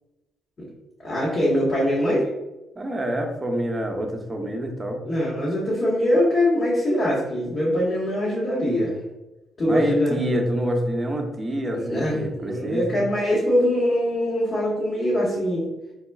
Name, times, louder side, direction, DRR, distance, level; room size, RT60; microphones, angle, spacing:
voice 1, 1.0-2.3 5.0-9.0 9.6-10.2 11.7-15.7, equal, 40° left, -7 dB, 1.3 m, -23 dB
voice 2, 2.8-5.0 9.6-13.0, equal, 20° right, 2 dB, 0.8 m, -27 dB
4.2 x 4.0 x 2.3 m, 1.0 s
cardioid pair, 90°, 0 cm